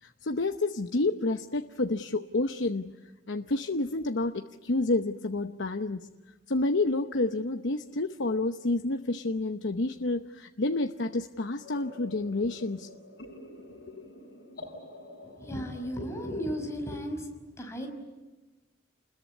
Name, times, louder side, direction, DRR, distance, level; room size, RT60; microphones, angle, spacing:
voice 1, 0.0-3.0 3.3-6.1 6.5-12.9 13.9-14.1, left 2 dB, 85° left, 6 dB, 0.9 m, -29 dB
sound 1, 11.6-16.7, left 1 dB, 55° left, 7.6 m, -48 dB
voice 2, 15.4-17.3 17.6-17.9, equal, 15° left, 3 dB, 5.4 m, -34 dB
29.5 x 21.0 x 9.6 m, 1.1 s
head